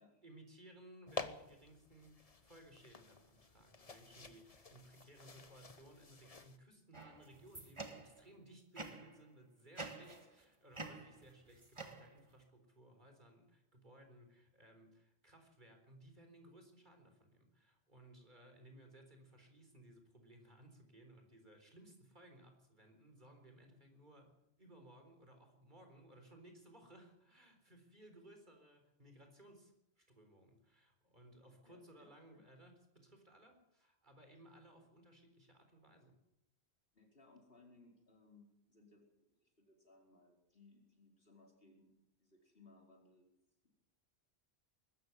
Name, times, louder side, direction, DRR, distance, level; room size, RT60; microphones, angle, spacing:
voice 1, 0.2-36.2, right 1 dB, 45° right, 5 dB, 4.2 m, -61 dB
sound 1, 1.1-6.6, left 4 dB, 35° left, 1.2 m, -50 dB
sound 2, 6.9-8.3 8.7-9.2 9.8-10.4 10.7-12.4, right 3 dB, 30° right, 1.8 m, -49 dB
voice 2, 31.6-32.4 36.0-36.1 36.9-43.3 43.6-43.7, left 3 dB, 60° left, 1 dB, 5.0 m, -65 dB
21.5 x 13.5 x 9.5 m, 0.84 s
omnidirectional pair, 1.1 m